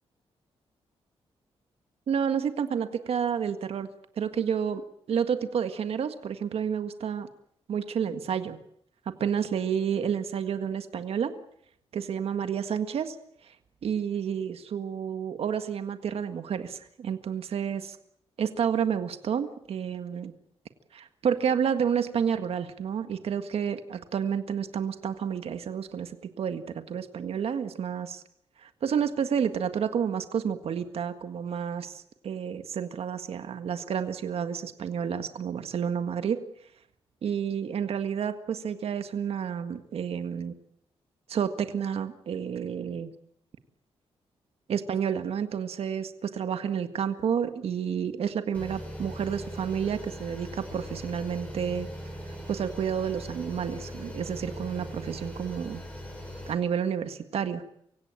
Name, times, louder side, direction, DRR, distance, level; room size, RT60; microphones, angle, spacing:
voice 1, 2.1-3.9 4.2-4.8 5.1-7.3 7.7-8.6 9.2-11.3 11.9-13.1 13.4-13.5 13.8-18.0 18.4-20.3 20.9-28.2 28.6-36.4 37.2-40.5 41.3-43.1 44.7-51.9 52.5-55.8 56.5-57.7, right 7 dB, 70° right, 9 dB, 1.7 m, -30 dB
sound 1, 48.5-56.5, equal, 15° left, 7.0 m, -40 dB
25.0 x 16.5 x 8.9 m, 0.72 s
cardioid pair, 110°, 10 cm